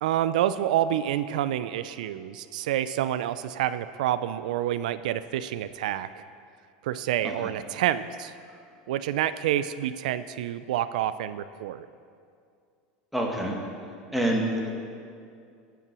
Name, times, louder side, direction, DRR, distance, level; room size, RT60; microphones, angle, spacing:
voice 1, 0.0-6.1 6.8-8.3 8.9-11.9, right 12 dB, 85° right, 13 dB, 0.3 m, -28 dB
voice 2, 13.1-13.6 14.1-14.7, right 1 dB, ahead, -1 dB, 1.8 m, -26 dB
12.5 x 5.7 x 6.1 m, 2.3 s
supercardioid pair, 120°, 4 cm